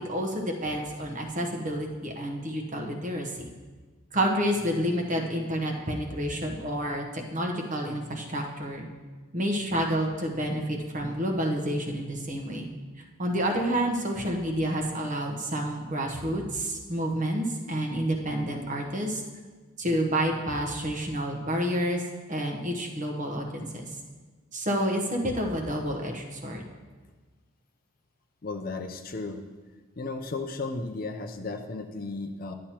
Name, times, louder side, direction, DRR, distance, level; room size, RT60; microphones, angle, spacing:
voice 1, 0.1-3.4 4.1-8.9 9.3-12.7 13.2-19.2 19.8-22.0 22.3-23.7 24.5-26.6, equal, 35° right, 1 dB, 0.9 m, -29 dB
voice 2, 28.4-29.4 30.0-32.5, left 3 dB, 40° left, 5 dB, 0.5 m, -34 dB
11.5 x 8.5 x 3.0 m, 1.4 s
head